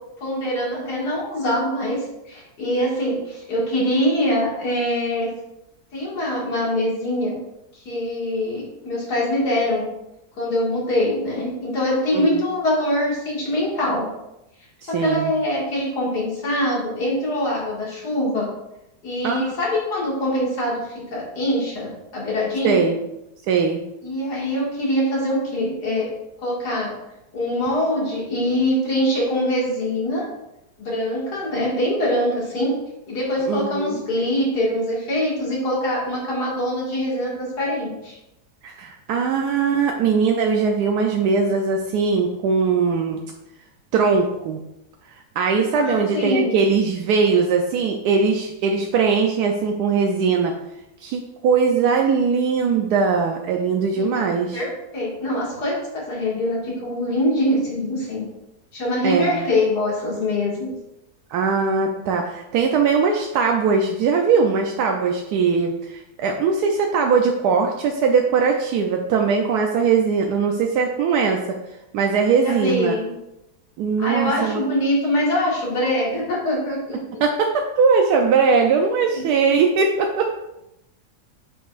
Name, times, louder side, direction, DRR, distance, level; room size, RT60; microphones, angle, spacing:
voice 1, 0.2-5.3 5.9-7.4 7.9-9.9 10.4-14.1 14.9-18.5 19.0-22.9 24.0-26.1 26.4-26.9 27.3-30.3 30.8-32.8 33.1-38.2 45.7-46.5 54.0-54.2 54.5-58.3 58.7-60.7 72.4-73.1 74.0-77.2, left 1 dB, 90° left, -4 dB, 2.5 m, -23 dB
voice 2, 14.8-15.3 19.2-19.5 22.6-23.0 23.5-23.8 33.5-34.0 38.6-43.2 43.9-44.6 45.1-50.5 51.0-54.6 59.0-59.5 61.3-71.6 71.9-73.0 73.8-74.6 77.2-80.3, right 5 dB, 80° right, 2 dB, 1.2 m, -20 dB
8.4 x 5.5 x 2.4 m, 0.89 s
omnidirectional pair, 1.7 m